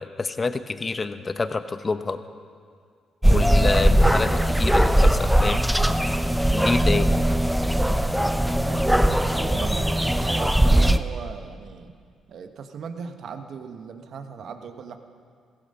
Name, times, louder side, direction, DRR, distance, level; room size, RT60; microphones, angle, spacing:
voice 1, 0.0-2.2 3.3-5.6 6.5-7.2, left 4 dB, 35° left, 11 dB, 0.9 m, -27 dB
sound 1, 3.2-11.0, right 1 dB, 5° right, 0.8 m, -20 dB
voice 2, 8.6-11.9 12.3-15.0, right 6 dB, 65° right, 7 dB, 1.1 m, -37 dB
16.0 x 15.5 x 5.5 m, 2.1 s
hypercardioid pair, 50°, 0 cm